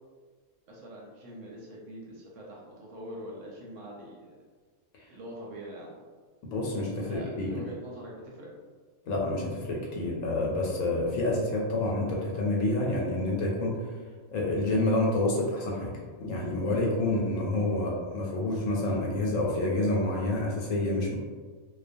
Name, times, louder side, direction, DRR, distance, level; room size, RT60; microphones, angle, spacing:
voice 1, 0.7-4.4 5.1-6.0 6.9-8.5, right 1 dB, 70° right, -4 dB, 0.8 m, -44 dB
voice 2, 6.4-7.6 9.1-13.8 14.3-15.9 16.2-21.1, left 2 dB, 70° left, -3 dB, 0.9 m, -28 dB
2.3 x 2.2 x 2.5 m, 1.5 s
omnidirectional pair, 1.5 m